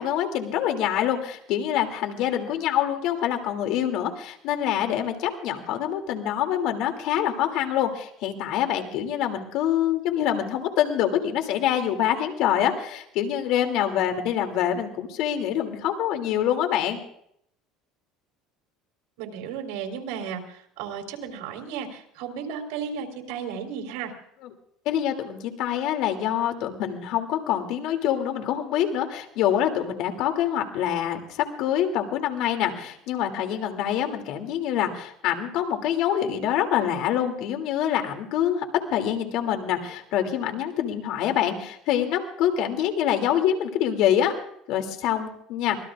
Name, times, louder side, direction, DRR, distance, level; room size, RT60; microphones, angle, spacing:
voice 1, 0.0-17.0 24.8-38.6 38.9-44.3 44.7-45.8, left 10 dB, 65° left, 5 dB, 2.8 m, -25 dB
voice 2, 19.2-24.1, right 7 dB, 75° right, 3 dB, 3.9 m, -34 dB
25.5 x 20.0 x 2.5 m, 0.69 s
cardioid pair, 130°, 0 cm